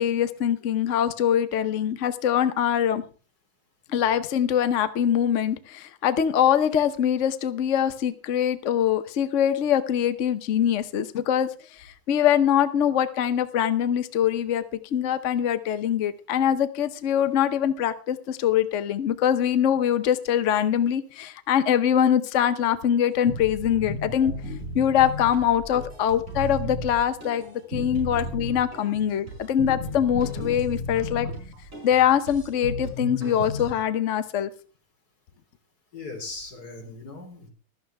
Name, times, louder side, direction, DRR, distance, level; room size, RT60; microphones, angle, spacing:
voice 1, 0.0-3.0 3.9-14.6 14.9-24.3 24.7-31.3 31.8-34.5, left 9 dB, 60° left, 11 dB, 0.7 m, -23 dB
sound 1, 23.3-33.7, equal, 35° right, 6.0 m, -34 dB
voice 2, 35.9-37.5, left 3 dB, 45° left, 2 dB, 4.0 m, -39 dB
15.0 x 13.0 x 3.4 m, 0.36 s
omnidirectional pair, 2.3 m